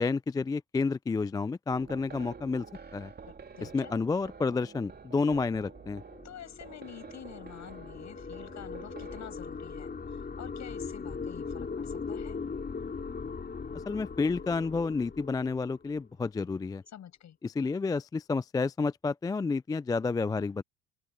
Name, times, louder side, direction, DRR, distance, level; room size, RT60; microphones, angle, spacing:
voice 1, 0.0-2.7 2.9-3.1 3.7-6.0 13.7-16.8 17.4-20.6, left 4 dB, 10° left, 0.3 m, -30 dB
sound 1, 1.7-9.4, right 5 dB, 30° right, 2.8 m, -49 dB
voice 2, 3.2-3.9 6.2-12.4 16.9-17.4, left 10 dB, 50° left, 7.9 m, -48 dB
sound 2, 5.7-16.1, left 5 dB, 25° left, 3.7 m, -40 dB
open air
hypercardioid pair, 70°, 35 cm